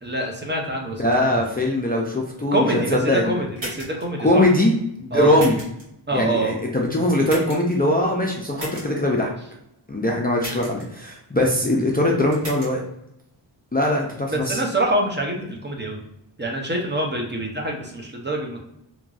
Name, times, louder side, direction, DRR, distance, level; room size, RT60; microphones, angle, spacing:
voice 1, 0.0-1.0 1.3-1.5 2.5-4.4 5.1-5.4 6.1-6.6 14.3-16.0 16.4-18.6, right 1 dB, 25° right, 0 dB, 0.6 m, -25 dB
voice 2, 1.0-2.7 2.9-3.3 4.2-4.7 5.0-5.6 6.1-9.3 9.9-12.8 13.7-14.6, left 1 dB, 20° left, -2 dB, 0.4 m, -21 dB
sound 1, 3.6-4.0 5.3-5.8 7.2-7.7 8.6-8.8 10.4-10.8 12.3-12.7, right 1 dB, 65° right, 1.5 m, -35 dB
3.0 x 2.5 x 2.3 m, 0.79 s
wide cardioid pair, 70°, 45 cm